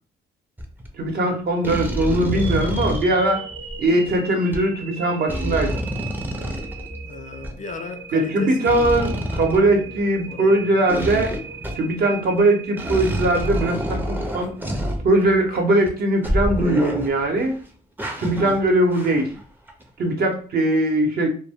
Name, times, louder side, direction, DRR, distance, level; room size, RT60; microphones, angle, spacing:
sound 1, 0.6-0.9 1.6-4.2 4.5-4.6 5.3-7.5 8.7-10.2 10.9-12.0 12.4-12.5 12.8-15.5 15.9-16.0 16.2-17.5 18.0-19.4 19.7-19.8, equal, 10° right, 0.5 m, -28 dB
voice 1, 1.0-3.4 3.8-5.8 8.1-11.3 11.7-14.5 15.0-17.5 18.2-19.3 20.0-21.3, right 1 dB, 60° right, 0.8 m, -20 dB
sound 2, 2.3-14.4, right 5 dB, 85° right, 0.7 m, -39 dB
voice 2, 7.0-10.0 10.3-10.7, left 4 dB, 45° left, 0.5 m, -37 dB
2.1 x 2.1 x 3.5 m
cardioid pair, 85°, 18 cm